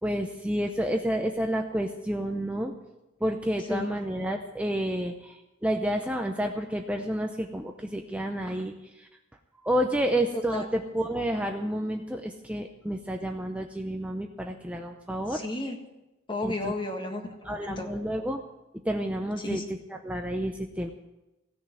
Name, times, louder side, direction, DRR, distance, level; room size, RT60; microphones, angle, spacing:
voice 1, 0.0-2.7 3.2-9.1 9.6-15.4 16.4-16.7 17.5-18.4 18.8-19.6 20.0-20.9, equal, 5° right, 3 dB, 0.6 m, -30 dB
voice 2, 10.3-10.7 15.3-15.8 16.3-17.9 19.4-19.6, left 2 dB, 25° left, 4 dB, 1.7 m, -33 dB
16.5 x 6.7 x 9.0 m, 0.99 s
head